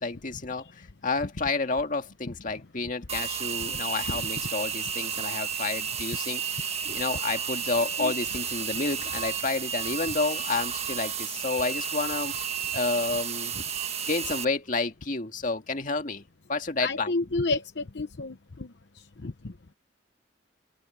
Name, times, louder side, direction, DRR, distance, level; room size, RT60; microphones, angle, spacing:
voice 1, 0.0-12.3 12.7-13.7 14.1-16.2 16.5-17.1, left 3 dB, 45° left, 1.9 m, -30 dB
sound 1, 3.1-14.4, right 7 dB, 35° right, 1.7 m, -32 dB
voice 2, 16.8-18.7 19.2-19.3, left 3 dB, 70° left, 0.9 m, -30 dB
open air
head